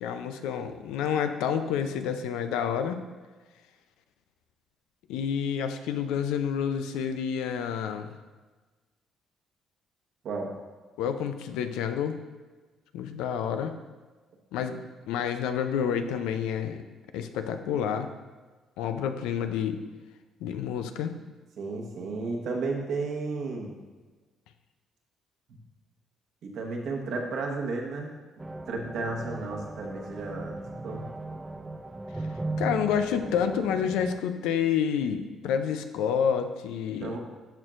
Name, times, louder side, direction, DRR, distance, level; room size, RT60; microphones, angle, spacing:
voice 1, 0.0-3.0 5.1-8.1 11.0-12.2 12.9-13.8 14.5-16.8 17.1-18.1 18.8-19.8 20.4-21.2 32.6-37.2, left 8 dB, 90° left, 8 dB, 0.5 m, -29 dB
voice 2, 21.6-23.7 26.4-28.1 28.7-31.1 37.0-37.2, right 3 dB, 65° right, 1 dB, 1.2 m, -33 dB
sound 1, 28.4-34.2, right 2 dB, 15° right, 0.4 m, -37 dB
13.0 x 4.4 x 2.5 m, 1.3 s
cardioid pair, 85°, 0 cm